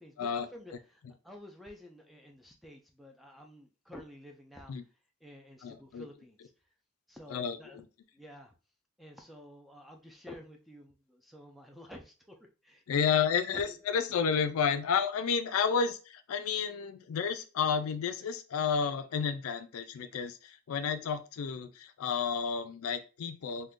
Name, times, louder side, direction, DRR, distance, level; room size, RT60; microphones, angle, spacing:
voice 1, 0.0-4.7 5.2-6.4 7.1-7.8 8.1-8.5 9.0-12.4 12.6-13.1 13.5-13.8, left 1 dB, ahead, 2 dB, 0.3 m, -51 dB
voice 2, 5.6-6.1 7.3-7.9 12.9-23.7, left 6 dB, 75° left, 10 dB, 0.4 m, -31 dB
2.5 x 2.2 x 3.5 m, 0.33 s
head